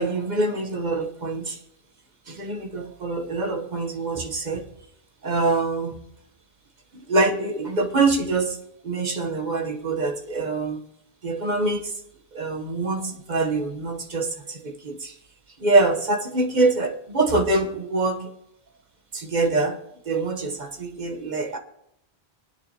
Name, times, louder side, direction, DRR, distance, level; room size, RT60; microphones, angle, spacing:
voice 1, 0.0-1.6 2.3-4.7 5.2-6.0 7.1-8.6 8.8-10.8 11.2-11.9 12.3-15.1 15.6-18.3 19.1-19.8 20.0-21.6, right 3 dB, 45° right, 4 dB, 1.2 m, -24 dB
20.0 x 9.6 x 2.9 m, 0.78 s
omnidirectional pair, 1.1 m